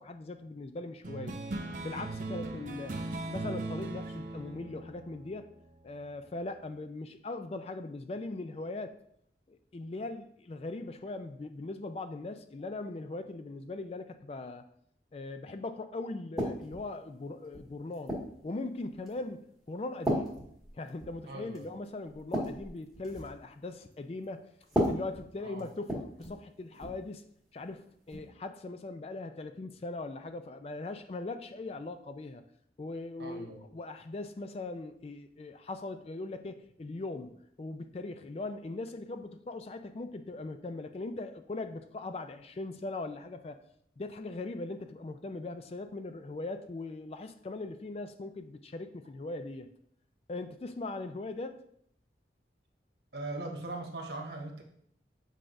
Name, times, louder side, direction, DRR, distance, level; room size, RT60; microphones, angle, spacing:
voice 1, 0.0-1.4 1.8-3.0 3.3-5.5 5.8-9.0 9.5-14.6 15.1-20.4 20.7-24.5 24.9-27.2 27.5-32.4 32.8-43.6 44.0-49.7 50.3-51.6, left 2 dB, 35° left, 9 dB, 0.3 m, -40 dB
sound 1, 1.0-6.0, right 2 dB, 45° right, 0.5 m, -39 dB
sound 2, 16.4-16.9 17.5-18.4 19.1-19.3 20.0-21.2 21.5-21.7 22.1-23.4 24.6-26.4 26.7-27.0 28.1-28.3, equal, ahead, 1.7 m, -34 dB
voice 2, 21.2-21.7 25.4-25.7 33.2-33.7 53.1-54.6, right 2 dB, 70° right, 1 dB, 1.2 m, -40 dB
7.7 x 4.8 x 2.6 m, 0.69 s
head